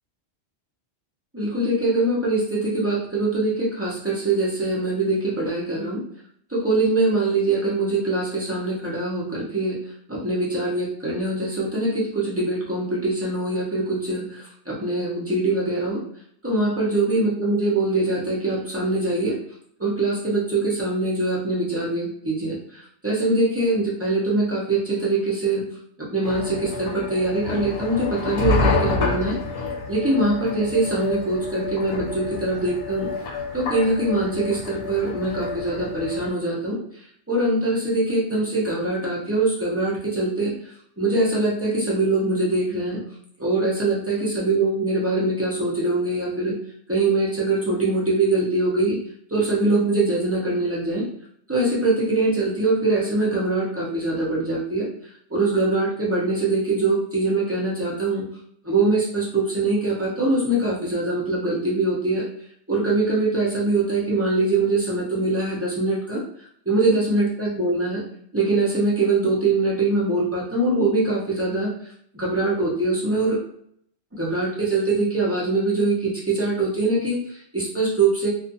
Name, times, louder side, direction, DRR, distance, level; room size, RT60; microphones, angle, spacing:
voice 1, 1.3-6.0 6.5-9.8 10.1-16.0 16.4-19.4 19.8-25.6 26.0-29.4 29.9-33.1 33.5-36.8 37.3-40.5 41.0-43.0 43.4-46.5 46.9-49.0 49.3-51.1 51.5-54.9 55.3-58.2 58.6-62.2 62.7-66.2 66.7-68.0 68.3-71.7 72.1-73.4 74.1-78.3, right 2 dB, 15° right, -6 dB, 0.6 m, -23 dB
sound 1, 26.2-36.3, left 3 dB, 85° left, 0.9 m, -28 dB
2.4 x 2.4 x 2.6 m, 0.64 s
omnidirectional pair, 1.2 m